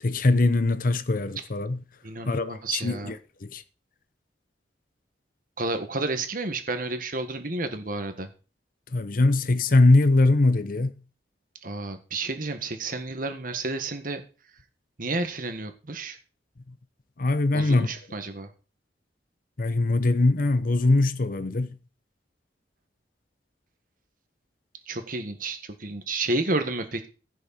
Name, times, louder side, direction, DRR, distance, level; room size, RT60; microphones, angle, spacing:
voice 1, 0.0-1.8 2.3-3.6 8.9-10.9 17.2-17.9 19.6-21.7, left 2 dB, 50° left, 0.8 m, -22 dB
voice 2, 2.0-3.1 5.6-8.3 11.6-14.2 15.0-16.2 17.5-18.5 24.9-27.1, right 2 dB, 50° right, 1.7 m, -31 dB
15.5 x 6.5 x 4.3 m
head